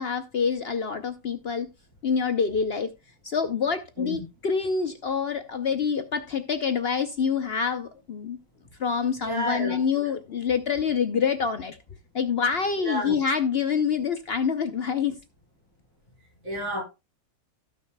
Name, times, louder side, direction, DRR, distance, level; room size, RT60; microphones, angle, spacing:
voice 1, 0.0-1.7 2.0-2.9 3.2-8.4 8.8-11.8 12.1-15.2, left 6 dB, 55° left, 0.8 m, -26 dB
voice 2, 9.2-10.1 12.8-13.2 16.4-16.8, equal, 65° right, 5.0 m, -31 dB
17.0 x 6.0 x 2.2 m
omnidirectional pair, 1.5 m